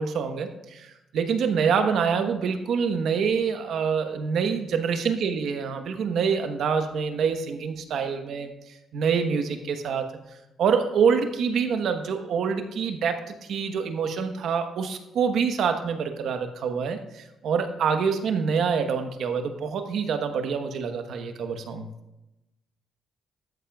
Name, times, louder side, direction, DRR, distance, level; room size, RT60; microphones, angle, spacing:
voice 1, 0.0-8.5 8.9-10.1 10.6-13.2 13.5-21.9, right 6 dB, 70° right, 7 dB, 1.1 m, -26 dB
13.0 x 8.7 x 2.3 m, 0.93 s
cardioid pair, 90°, 0 cm